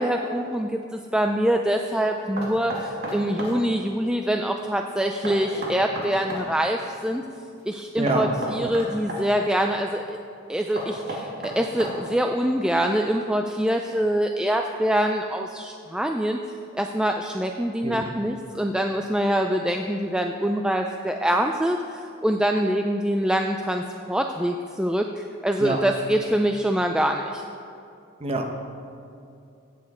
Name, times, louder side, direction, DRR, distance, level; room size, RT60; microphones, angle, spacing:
voice 1, 0.0-7.2 7.7-10.2 10.5-16.4 16.7-27.4, equal, 5° right, 4 dB, 0.3 m, -25 dB
Knock, 2.4-3.6 5.2-6.5 8.1-9.2 10.8-12.2, right 1 dB, 50° right, 2.4 m, -32 dB
voice 2, 8.0-8.3 8.6-8.7 17.8-18.1 25.6-25.8 28.2-28.6, right 2 dB, 30° right, 3 dB, 1.1 m, -26 dB
16.0 x 8.7 x 4.3 m, 2.6 s
head